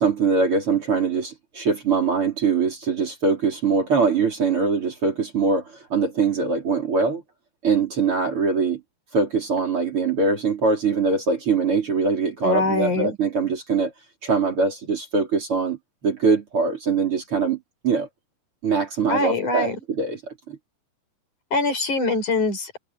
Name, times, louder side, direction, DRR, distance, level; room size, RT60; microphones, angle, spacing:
voice 1, 0.0-7.2 7.6-8.8 9.1-13.9 14.2-15.8 16.0-18.1 18.6-20.6, right 4 dB, 40° right, 4.2 m, -22 dB
voice 2, 12.4-13.2 19.1-19.8 21.5-22.7, left 3 dB, 60° left, 6.7 m, -23 dB
omnidirectional pair, 4.0 m